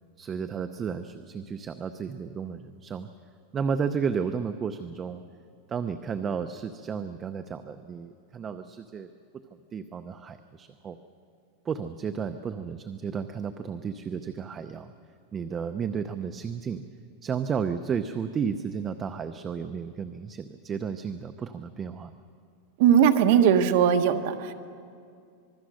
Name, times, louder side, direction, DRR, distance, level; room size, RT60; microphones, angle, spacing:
voice 1, 0.2-3.1 3.5-5.2 5.7-9.1 9.7-11.0 11.6-14.9 15.3-16.8 17.2-22.1, right 6 dB, 20° right, 9 dB, 0.6 m, -32 dB
voice 2, 22.8-24.5, right 8 dB, 55° right, 6 dB, 1.4 m, -20 dB
26.0 x 21.0 x 6.4 m, 2.3 s
supercardioid pair, 160°, 0 cm